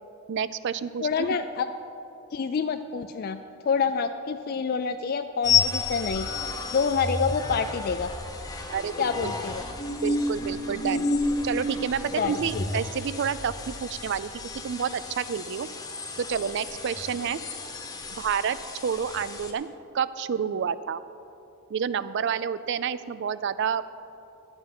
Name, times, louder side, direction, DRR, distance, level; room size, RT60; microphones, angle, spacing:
voice 1, 0.3-1.1 8.7-9.3 10.0-11.1 11.4-14.3 14.6-15.7 16.2-17.4 18.1-18.6 18.8-19.7 19.9-21.0 21.7-23.8, right 7 dB, 55° right, 15 dB, 0.3 m, -29 dB
voice 2, 1.0-1.7 2.3-3.4 3.7-6.3 6.7-8.1 9.0-9.6 12.2-12.6, left 5 dB, 45° left, 8 dB, 0.3 m, -27 dB
sound 1, 5.4-19.5, left 3 dB, 15° left, 0.9 m, -31 dB
12.0 x 8.0 x 5.9 m, 2.7 s
head